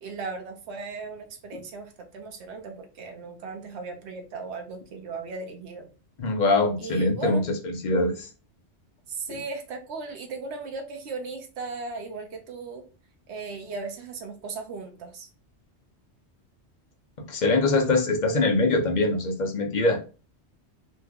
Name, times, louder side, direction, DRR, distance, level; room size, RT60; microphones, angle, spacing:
voice 1, 0.0-5.9 6.8-7.4 9.1-12.8 13.3-15.3, right 4 dB, 70° right, 4 dB, 1.0 m, -37 dB
voice 2, 6.2-8.3 9.3-9.4 17.2-20.0, left 2 dB, 50° left, 4 dB, 0.7 m, -23 dB
3.0 x 2.3 x 3.5 m, 0.34 s
omnidirectional pair, 1.2 m